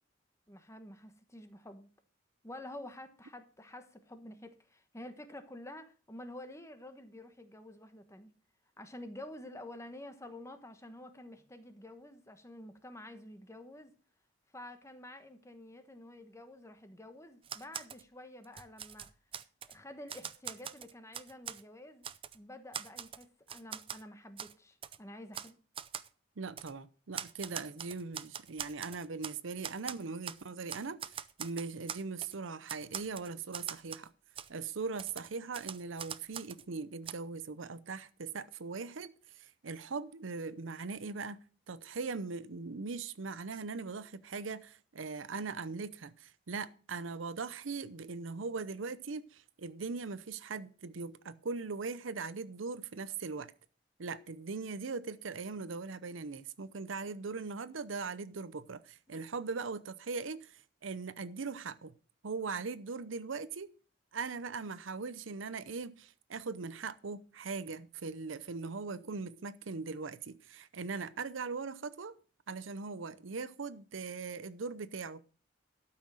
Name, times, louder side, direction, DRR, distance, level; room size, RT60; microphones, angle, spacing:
voice 1, 0.5-1.9 2.4-8.3 8.8-13.9 14.5-19.1 19.6-22.1 22.3-25.5, left 1 dB, 15° left, 1.2 m, -49 dB
Typewriter, 17.4-18.0 18.4-19.8 20.1-21.6 22.0-22.4 22.7-24.0 24.4-24.5 24.8-25.0 25.3-25.5 25.8-26.1 26.6-26.7 27.1-29.4 29.6-30.4 30.7-32.4 32.7-34.1 34.4-34.5 35.0-36.6 37.1-37.2, right 8 dB, 30° right, 0.5 m, -42 dB
voice 2, 26.4-31.0 31.4-34.1 34.5-53.5 54.0-61.9 62.2-63.7 64.1-72.1 72.5-75.2, right 4 dB, 90° right, 0.7 m, -40 dB
12.5 x 5.9 x 6.3 m
head